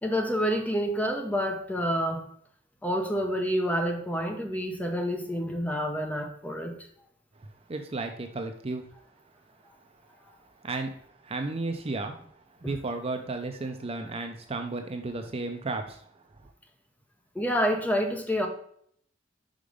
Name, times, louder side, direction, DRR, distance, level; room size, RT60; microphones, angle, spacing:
voice 1, 0.0-2.2 2.8-6.7 17.3-18.5, equal, 10° left, 3 dB, 0.8 m, -28 dB
voice 2, 7.4-8.8 10.6-10.9 11.2-12.2 12.6-16.1, right 3 dB, 30° right, 5 dB, 0.5 m, -33 dB
5.1 x 5.0 x 5.0 m, 0.65 s
head